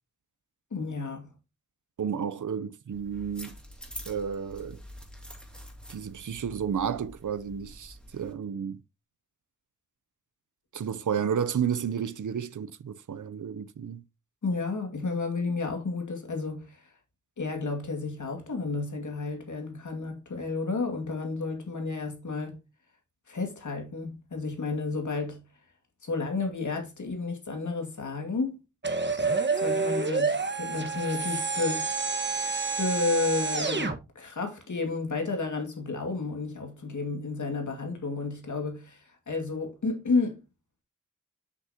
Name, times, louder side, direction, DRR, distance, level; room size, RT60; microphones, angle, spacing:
voice 1, 0.7-1.3 14.4-16.8 17.4-22.6 23.3-25.4 26.0-28.6 29.5-31.8 32.8-40.4, left 3 dB, 75° left, 2.2 m, -31 dB
voice 2, 2.0-3.5 4.1-4.8 5.9-8.8 10.7-14.0, right 7 dB, 85° right, 0.7 m, -32 dB
sound 1, 2.9-8.3, equal, 5° left, 2.9 m, -46 dB
sound 2, 28.8-34.0, right 4 dB, 35° right, 1.5 m, -28 dB
7.7 x 6.3 x 2.8 m
cardioid pair, 45°, 30 cm